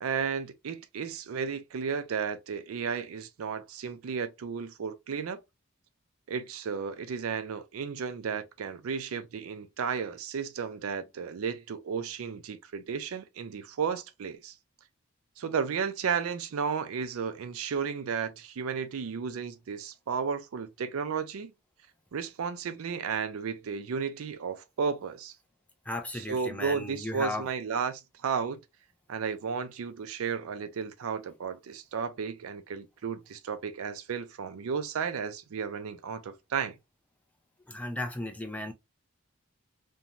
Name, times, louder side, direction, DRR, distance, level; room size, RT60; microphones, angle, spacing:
voice 1, 0.0-5.4 6.3-14.5 15.4-21.5 22.1-25.3 26.1-28.6 29.1-36.8, right 6 dB, 90° right, 0.4 m, -33 dB
voice 2, 25.9-27.5 37.7-38.7, left 1 dB, 5° left, 0.4 m, -35 dB
2.6 x 2.2 x 2.8 m
head